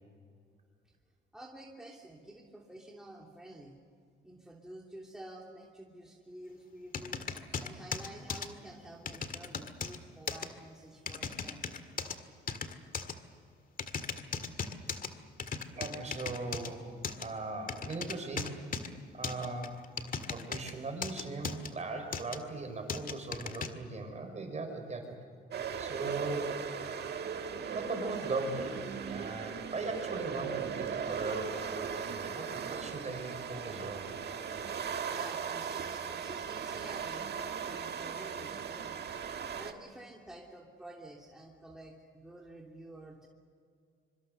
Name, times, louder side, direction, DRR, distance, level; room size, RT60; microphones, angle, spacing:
voice 1, 1.3-3.8 4.2-7.2 7.6-12.0 35.1-39.0 39.5-43.3, right 1 dB, 5° right, -2 dB, 3.0 m, -50 dB
sound 1, 6.9-8.5 9.1-10.0 10.3-10.5 11.1-12.1 12.5-13.1 13.8-15.1 15.4-16.7 17.0-17.3 17.7-18.9 19.2-20.7 21.0-21.7 22.1-22.4 22.9-23.7, left 5 dB, 45° left, 1.9 m, -37 dB
voice 2, 15.8-16.9 17.2-18.6 19.1-19.8 20.3-25.1 25.8-26.8 27.7-34.1, right 3 dB, 35° right, 5 dB, 5.5 m, -39 dB
sound 2, 25.5-39.7, right 7 dB, 55° right, 1.8 m, -38 dB
25.0 x 24.5 x 6.8 m, 2.3 s
cardioid pair, 90°, 20 cm